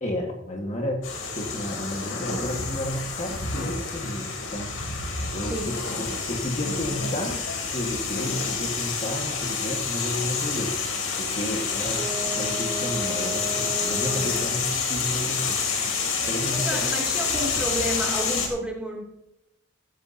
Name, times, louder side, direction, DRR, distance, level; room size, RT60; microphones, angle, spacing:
voice 1, 0.0-4.8 5.3-5.7 6.3-15.6 16.2-16.8, left 1 dB, 35° left, 1 dB, 1.6 m, -32 dB
sound 1, 1.0-18.5, left 5 dB, 85° left, 3.0 m, -28 dB
voice 2, 5.4-6.1 16.5-19.0, equal, 5° right, -2 dB, 2.7 m, -31 dB
Wind instrument woodwind instrument, 11.9-14.8, equal, 20° right, 3.5 m, -35 dB
14.5 x 14.0 x 2.8 m, 0.84 s
head